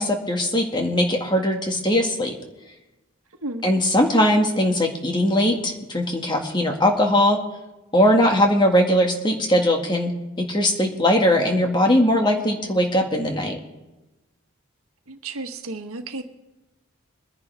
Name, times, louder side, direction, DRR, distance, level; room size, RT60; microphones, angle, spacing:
voice 1, 0.0-2.3 3.6-7.4 7.9-10.1 10.4-13.6, left 1 dB, 20° left, 2 dB, 1.9 m, -20 dB
voice 2, 3.3-3.7 15.1-16.2, right 2 dB, 85° right, 6 dB, 1.5 m, -33 dB
23.5 x 10.5 x 3.5 m, 1.1 s
head